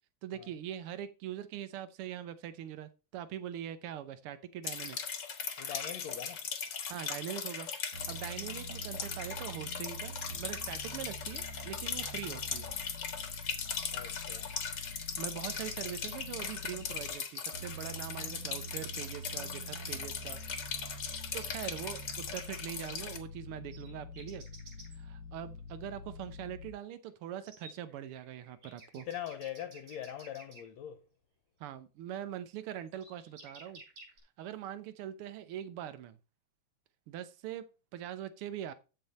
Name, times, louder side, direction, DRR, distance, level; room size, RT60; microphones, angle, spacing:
voice 1, 0.2-5.0 6.9-7.7 8.1-12.7 15.2-24.4 24.9-29.1 31.6-33.8 34.4-36.2 37.1-37.6 37.9-38.7, right 11 dB, 75° right, 1.2 m, -42 dB
sound 1, 4.6-23.2, left 6 dB, 50° left, 1.5 m, -39 dB
voice 2, 5.6-6.4 13.9-14.5 29.1-31.0, left 10 dB, 70° left, 1.9 m, -42 dB
sound 2, 7.9-17.1 17.5-26.7, equal, 40° right, 4.4 m, -46 dB
sound 3, 20.9-22.0 23.6-25.0 27.0-27.1 27.5-30.6 32.5-32.6 32.9-34.2, right 3 dB, 55° right, 5.1 m, -53 dB
13.5 x 5.4 x 4.1 m
omnidirectional pair, 3.5 m